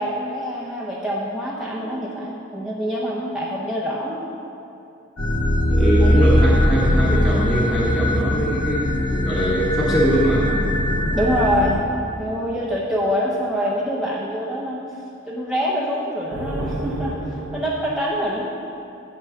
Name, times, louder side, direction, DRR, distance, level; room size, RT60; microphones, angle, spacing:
voice 1, 0.0-4.2 6.0-6.2 6.8-7.1 11.2-11.9 12.2-14.8 15.2-18.5, equal, ahead, -6 dB, 0.7 m, -25 dB
sound 1, 5.2-11.7, left 1 dB, 60° left, 1.2 m, -20 dB
voice 2, 5.7-10.5, right 1 dB, 15° left, -10 dB, 1.1 m, -22 dB
sound 2, 10.6-13.3 16.3-17.7, equal, 65° right, 0.8 m, -32 dB
8.1 x 5.8 x 6.8 m, 2.8 s
head